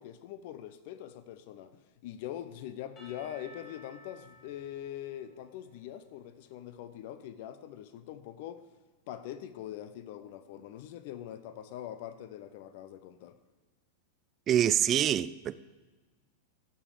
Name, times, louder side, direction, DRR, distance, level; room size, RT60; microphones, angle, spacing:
voice 1, 0.0-8.6 9.1-13.4, left 11 dB, 50° left, 0.7 m, -43 dB
Percussion / Church bell, 3.0-6.9, left 1 dB, 25° left, 3.0 m, -57 dB
voice 2, 14.5-15.6, right 10 dB, 30° right, 0.4 m, -26 dB
16.0 x 6.9 x 4.9 m
figure-of-eight pair, 90°, 0 cm